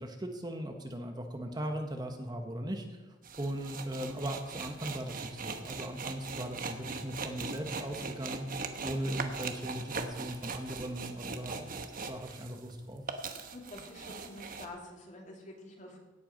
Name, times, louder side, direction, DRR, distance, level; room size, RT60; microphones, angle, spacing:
voice 1, 0.0-3.0 3.4-11.7 12.1-13.0, right 1 dB, 20° right, 4 dB, 1.0 m, -38 dB
sound 1, 3.2-12.7 13.0-14.7, right 4 dB, 45° right, 1.0 m, -40 dB
voice 2, 13.5-16.0, left 1 dB, 40° left, 0 dB, 2.7 m, -47 dB
17.0 x 8.1 x 5.1 m, 1.1 s
head